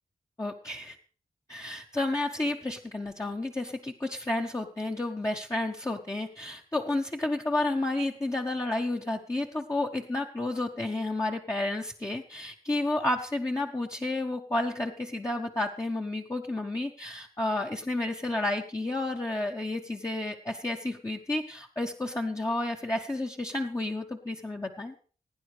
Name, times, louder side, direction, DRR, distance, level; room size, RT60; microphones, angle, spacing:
voice 1, 0.4-1.0 1.5-25.1, left 2 dB, 20° left, 0 dB, 0.9 m, -31 dB
17.0 x 9.2 x 3.3 m, 0.40 s
cardioid pair, 50°, 15 cm